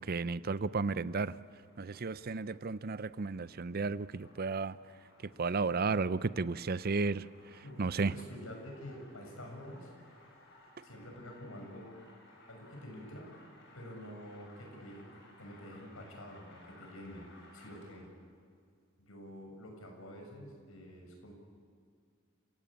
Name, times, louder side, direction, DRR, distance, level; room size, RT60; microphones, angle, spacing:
voice 1, 0.0-1.4 1.8-4.8 5.2-8.1, right 4 dB, 45° right, 0.6 m, -33 dB
sound 1, 1.5-18.1, left 2 dB, 55° left, 7.2 m, -60 dB
voice 2, 7.6-9.9 10.8-12.0 12.5-13.3 13.7-15.1 15.4-17.2 17.5-18.1 19.0-21.3, equal, 85° left, 6.6 m, -48 dB
29.5 x 16.5 x 8.9 m
head